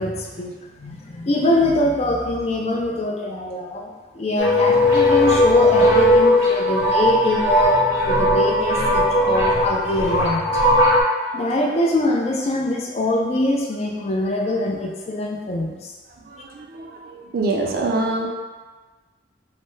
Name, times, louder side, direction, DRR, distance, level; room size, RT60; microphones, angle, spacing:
voice 1, 0.0-10.6 11.3-15.9, left 1 dB, 35° left, -1 dB, 0.4 m, -23 dB
sound 1, 4.4-11.0, left 1 dB, 80° left, 0.9 m, -17 dB
voice 2, 16.3-18.3, right 2 dB, 55° right, 1 dB, 0.4 m, -25 dB
3.2 x 2.1 x 3.1 m, 1.3 s
head